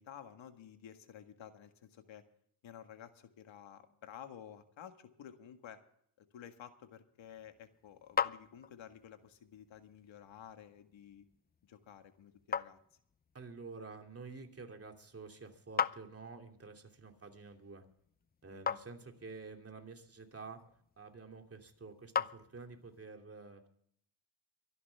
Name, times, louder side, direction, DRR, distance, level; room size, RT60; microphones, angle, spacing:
voice 1, 0.0-2.2 2.6-5.8 6.2-11.3 11.6-12.8 18.5-18.7, left 9 dB, 80° left, 7 dB, 1.8 m, -53 dB
sound 1, 7.2-23.0, left 7 dB, 20° left, 0.5 m, -43 dB
voice 2, 13.3-17.8 18.4-20.6 21.0-23.7, right 4 dB, 30° right, 3 dB, 2.8 m, -50 dB
24.0 x 11.0 x 3.5 m, 0.67 s
cardioid pair, 105°, 45 cm